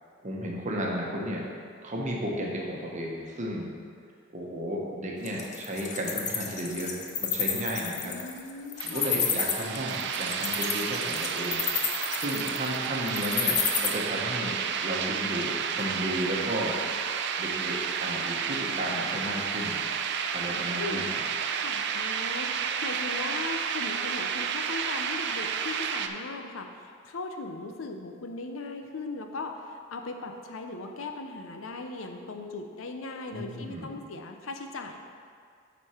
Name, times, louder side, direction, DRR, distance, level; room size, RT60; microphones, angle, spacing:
voice 1, 0.2-1.4 1.8-3.7 4.3-8.1 8.8-11.6 12.2-16.8 17.4-17.7 18.0-19.8 20.3-21.0 33.3-33.9, equal, 40° right, -2 dB, 1.1 m, -33 dB
Wild animals, 5.3-13.9, left 7 dB, 40° left, 0.7 m, -30 dB
voice 2, 8.0-9.5 20.8-21.2 21.5-35.0, left 3 dB, 90° left, 5 dB, 0.7 m, -38 dB
sound 1, 8.8-26.1, right 7 dB, 60° right, 0.5 m, -31 dB
7.9 x 5.3 x 4.5 m, 2.2 s
head